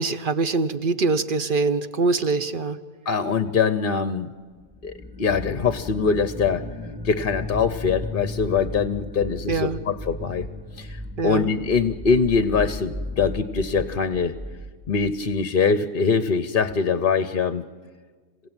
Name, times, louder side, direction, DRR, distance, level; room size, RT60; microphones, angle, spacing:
voice 1, 0.0-2.8 9.5-9.8 11.2-11.5, right 3 dB, 45° right, 12 dB, 0.8 m, -23 dB
voice 2, 3.1-4.3 4.8-6.6 7.0-10.5 10.8-11.0 11.2-14.3 14.9-17.6, left 5 dB, 45° left, 12 dB, 0.8 m, -23 dB
sound 1, 4.6-15.3, left 1 dB, 5° right, 1.9 m, -35 dB
27.0 x 16.0 x 8.9 m, 1.5 s
omnidirectional pair, 1.5 m